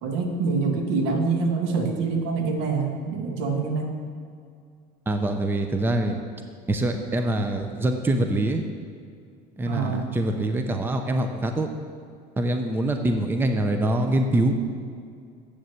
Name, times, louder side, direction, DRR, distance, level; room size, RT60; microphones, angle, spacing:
voice 1, 0.0-3.9 9.6-10.2, right 4 dB, 70° right, 3 dB, 1.6 m, -25 dB
voice 2, 5.1-6.2 6.7-8.6 9.6-11.7 12.4-14.6, right 1 dB, 10° right, 6 dB, 0.6 m, -24 dB
8.1 x 6.5 x 7.1 m, 2.2 s
supercardioid pair, 120°, 21 cm